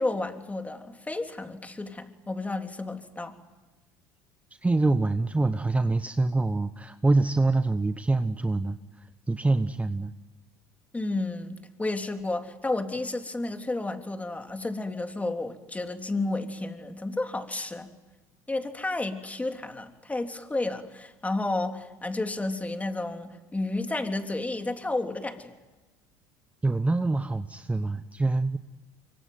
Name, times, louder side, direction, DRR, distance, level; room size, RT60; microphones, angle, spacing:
voice 1, 0.0-3.3 10.9-17.9 18.5-25.5, left 2 dB, 15° left, 6 dB, 3.4 m, -31 dB
voice 2, 4.6-10.1 26.6-28.6, right 2 dB, 15° right, 10 dB, 1.1 m, -25 dB
25.0 x 24.5 x 9.4 m, 1.2 s
hypercardioid pair, 80°, 11 cm